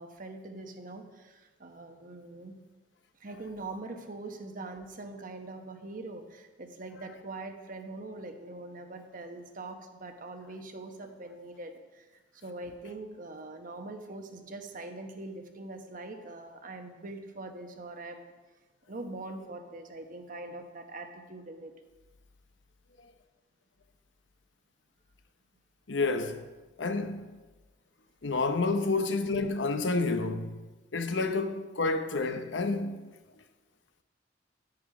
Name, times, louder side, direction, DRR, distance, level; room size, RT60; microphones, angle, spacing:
voice 1, 0.0-2.6 3.2-12.1 12.3-18.3 18.9-21.7 31.1-31.2, right 2 dB, 50° right, 1.1 m, -43 dB
voice 2, 25.9-26.4 26.8-27.4 28.2-30.6 30.9-33.1, left 3 dB, 80° left, 0.9 m, -29 dB
11.0 x 10.0 x 4.9 m
head